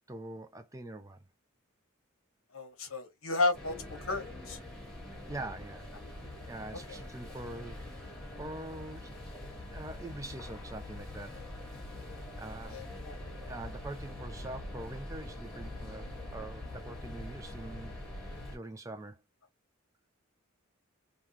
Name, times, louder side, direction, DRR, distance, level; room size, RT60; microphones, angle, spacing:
voice 1, 0.1-1.2 5.3-5.9 6.2-8.1 8.4-9.1 9.7-11.4 12.4-12.8 13.5-19.2, right 2 dB, 15° right, 0.3 m, -44 dB
voice 2, 2.5-4.6 6.9-7.0 12.7-13.2, left 3 dB, 70° left, 1.2 m, -33 dB
sound 1, 3.5-18.6, left 1 dB, 5° left, 1.5 m, -44 dB
3.6 x 2.3 x 2.7 m
head